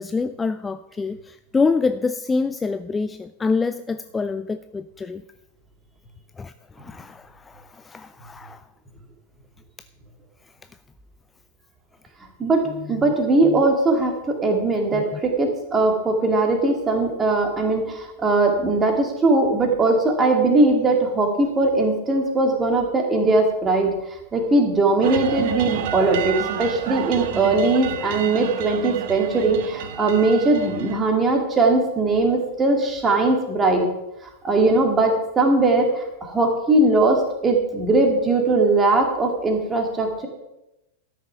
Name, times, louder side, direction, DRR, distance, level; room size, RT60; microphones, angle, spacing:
voice 1, 0.0-5.2 6.4-6.5 6.8-8.6 12.7-13.1 13.4-13.6 14.9-15.0, left 4 dB, 15° left, 11 dB, 0.3 m, -26 dB
voice 2, 12.4-23.9 24.3-33.9 34.4-40.3, right 2 dB, 20° right, 3 dB, 2.3 m, -20 dB
sound 1, 25.0-31.0, right 9 dB, 50° right, 0.8 m, -30 dB
12.5 x 6.4 x 5.8 m, 0.92 s
figure-of-eight pair, 90°, 0 cm